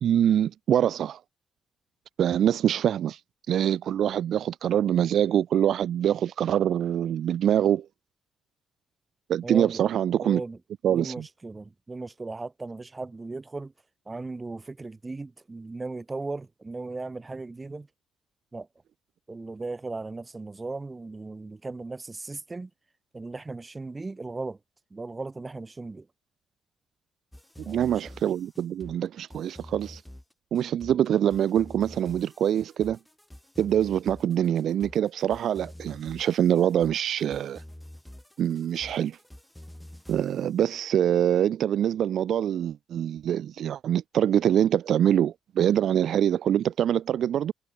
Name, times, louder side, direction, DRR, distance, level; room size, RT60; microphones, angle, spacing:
voice 1, 0.0-1.2 2.2-3.2 3.5-7.9 9.3-10.4 10.8-11.2 27.6-30.0 30.5-33.0 33.6-37.6 38.4-39.2 40.1-47.5, right 10 dB, 75° right, 0.5 m, -24 dB
voice 2, 9.4-9.8 10.2-10.6 10.9-13.7 14.1-17.9 18.5-18.7 19.3-22.7 23.1-24.6 24.9-26.1 27.7-27.8, right 3 dB, 25° right, 2.7 m, -37 dB
sound 1, 27.3-40.6, left 1 dB, 5° left, 6.5 m, -47 dB
cardioid pair, 80°, 0 cm